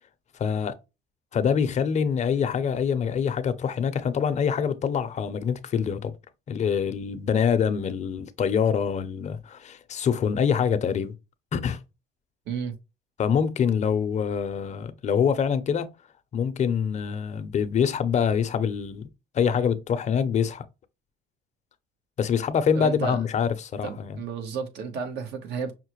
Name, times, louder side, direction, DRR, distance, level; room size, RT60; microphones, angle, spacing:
voice 1, 0.4-0.7 1.3-6.1 6.5-11.1 11.5-11.8 13.2-15.9 16.3-19.0 19.3-20.6 22.2-24.2, left 7 dB, 45° left, 0.6 m, -25 dB
voice 2, 22.7-23.2 23.8-25.7, right 5 dB, 80° right, 1.0 m, -32 dB
5.6 x 2.1 x 3.0 m
cardioid pair, 110°, 17 cm